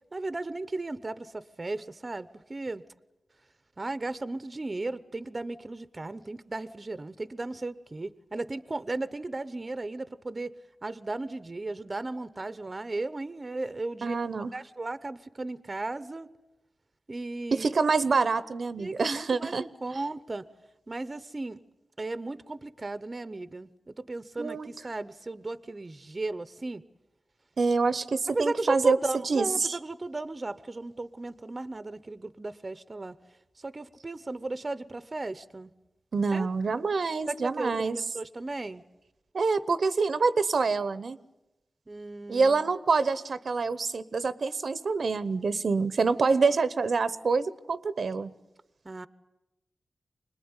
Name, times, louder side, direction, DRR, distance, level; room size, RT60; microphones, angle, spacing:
voice 1, 0.1-2.8 3.8-10.5 10.8-14.2 14.5-16.3 17.1-17.7 18.8-20.4 20.9-21.6 22.0-26.8 28.3-33.2 33.6-35.7 36.3-36.5 37.3-38.8 41.9-42.7 48.8-49.1, right 2 dB, 35° right, 15 dB, 0.8 m, -35 dB
voice 2, 14.0-14.5 17.5-19.6 24.4-24.7 27.6-29.0 29.3-29.8 36.1-38.0 39.3-41.2 42.3-48.3, right 4 dB, 65° right, 15 dB, 0.9 m, -26 dB
25.0 x 20.5 x 9.7 m, 0.97 s
wide cardioid pair, 80°, 0 cm